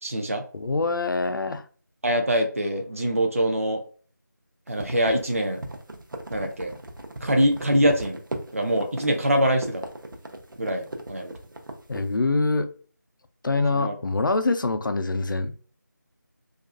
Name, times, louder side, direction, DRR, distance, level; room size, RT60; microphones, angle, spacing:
voice 1, 0.0-0.4 2.0-3.8 4.7-5.6 6.3-6.7 7.2-8.2 8.5-9.8 10.6-11.3 13.7-13.9, equal, 45° right, 0.4 m, -24 dB
voice 2, 0.5-1.6 11.9-12.7 13.4-15.6, left 3 dB, 80° left, 0.4 m, -24 dB
sound 1, 4.7-12.1, right 1 dB, 85° right, 0.6 m, -37 dB
2.4 x 2.3 x 2.4 m
figure-of-eight pair, 180°, 11 cm